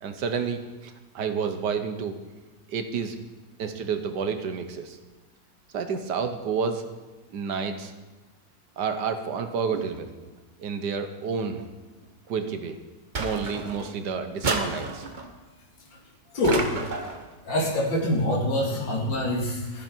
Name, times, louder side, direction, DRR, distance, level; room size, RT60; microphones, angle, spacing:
voice 1, 0.0-2.1 2.7-3.2 3.6-5.0 5.7-6.9 7.3-7.9 8.8-10.3 10.6-11.7 12.3-12.8 13.2-15.0, right 6 dB, 65° right, 8 dB, 1.5 m, -30 dB
sound 1, 13.1-13.9 14.4-15.3 16.4-17.2, right 3 dB, 35° right, 0.9 m, -30 dB
voice 2, 16.3-16.7 17.4-19.8, left 1 dB, 85° left, -2 dB, 2.9 m, -25 dB
14.5 x 11.0 x 4.5 m, 1.2 s
omnidirectional pair, 2.0 m